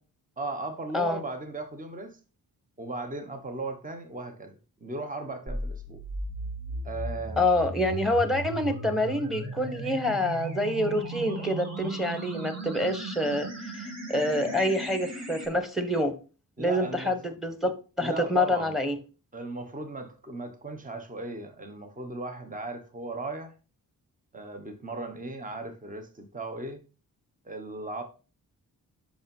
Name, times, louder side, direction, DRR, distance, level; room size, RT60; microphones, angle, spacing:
voice 1, 0.4-2.2 2.8-6.0 6.8-7.4 16.6-17.1 18.0-18.7 19.3-23.5 24.3-26.8 27.4-28.0, right 2 dB, 20° right, 1.2 m, -37 dB
sound 1, 5.5-15.5, right 2 dB, 45° right, 2.5 m, -37 dB
voice 2, 7.4-13.5 13.7-16.1 16.6-17.7 18.0-19.0, left 1 dB, ahead, 1.4 m, -27 dB
5.7 x 5.4 x 5.4 m
cardioid pair, 80°, 36 cm